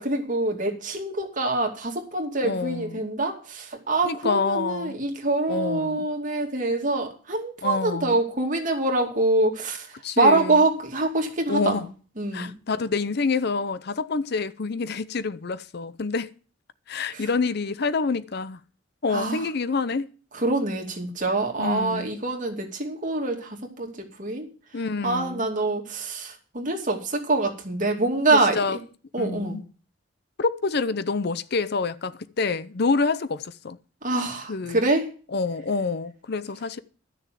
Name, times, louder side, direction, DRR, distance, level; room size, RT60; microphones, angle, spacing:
voice 1, 0.0-11.9 12.2-12.5 17.1-17.3 19.1-19.4 20.3-24.5 25.0-28.8 29.1-29.6 34.0-35.1, right 2 dB, 45° right, 2.5 m, -25 dB
voice 2, 2.4-3.0 4.0-5.0 5.5-6.1 7.6-8.2 10.0-10.6 11.5-11.8 12.3-16.3 16.9-18.6 19.0-20.1 21.6-22.2 24.7-25.5 28.3-28.8 29.2-29.6 30.4-33.8 34.5-34.8 35.3-36.8, left 4 dB, 55° left, 0.6 m, -27 dB
12.5 x 6.7 x 7.5 m
head